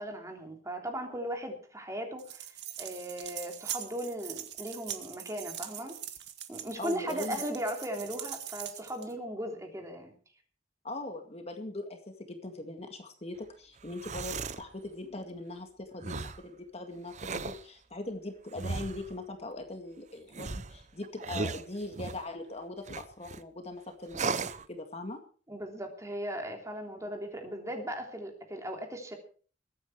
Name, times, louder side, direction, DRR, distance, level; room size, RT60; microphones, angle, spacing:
voice 1, 0.0-6.0 6.5-10.1 25.5-29.2, equal, 20° right, 3 dB, 3.2 m, -37 dB
sound 1, 2.2-9.1, right 11 dB, 65° right, 1.9 m, -42 dB
voice 2, 6.8-7.4 10.8-24.4 24.7-25.2, left 2 dB, 35° left, 5 dB, 2.0 m, -41 dB
sound 2, 13.8-14.7 16.0-16.4 17.1-17.6 18.6-19.1 20.3-22.3 22.9-23.4 24.1-24.6, right 4 dB, 40° right, 0.8 m, -36 dB
22.0 x 9.4 x 4.8 m, 0.41 s
head